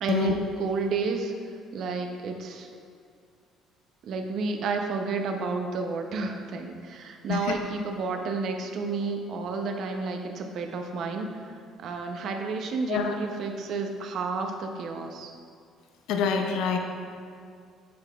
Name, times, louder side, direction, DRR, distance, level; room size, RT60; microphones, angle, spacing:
voice 1, 0.0-2.7 4.0-15.3, right 4 dB, 60° right, 4 dB, 0.7 m, -31 dB
voice 2, 16.1-16.8, left 6 dB, 80° left, 4 dB, 0.6 m, -26 dB
8.6 x 5.9 x 2.4 m, 2.2 s
cardioid pair, 125°, 0 cm